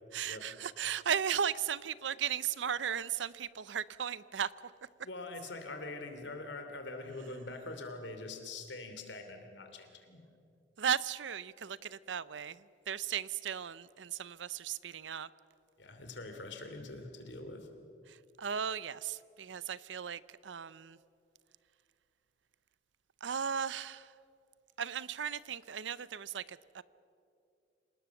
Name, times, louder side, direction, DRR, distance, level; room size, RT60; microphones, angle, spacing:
voice 1, 0.1-4.7 10.8-15.3 18.1-21.0 23.2-24.1 24.8-26.8, right 8 dB, 80° right, 0.6 m, -36 dB
voice 2, 5.0-10.2 15.8-17.7, left 2 dB, 70° left, 2.9 m, -44 dB
27.0 x 19.0 x 7.1 m
head